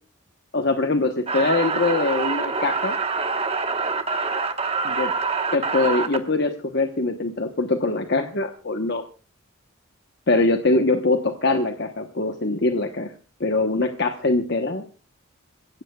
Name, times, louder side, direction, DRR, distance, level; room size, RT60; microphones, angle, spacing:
voice 1, 0.5-3.0 4.8-5.1 5.5-9.0 10.3-13.1 13.4-14.8, left 2 dB, 50° left, 6 dB, 1.1 m, -23 dB
sound 1, 1.3-6.2, right 4 dB, 30° right, 1.3 m, -25 dB
27.5 x 16.0 x 2.4 m, 0.34 s
head